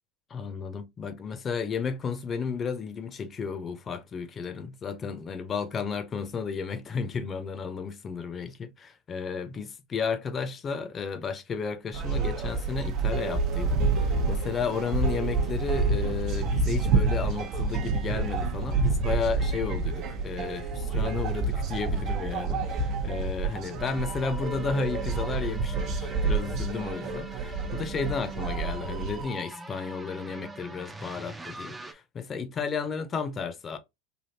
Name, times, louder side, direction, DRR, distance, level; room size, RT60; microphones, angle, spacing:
voice 1, 0.3-33.8, left 5 dB, 30° left, 0.7 m, -33 dB
sound 1, 11.9-29.2, right 4 dB, 50° right, 0.7 m, -28 dB
sound 2, 23.8-31.9, right 3 dB, 10° right, 0.5 m, -42 dB
3.3 x 2.6 x 2.6 m
hypercardioid pair, 95°, 0 cm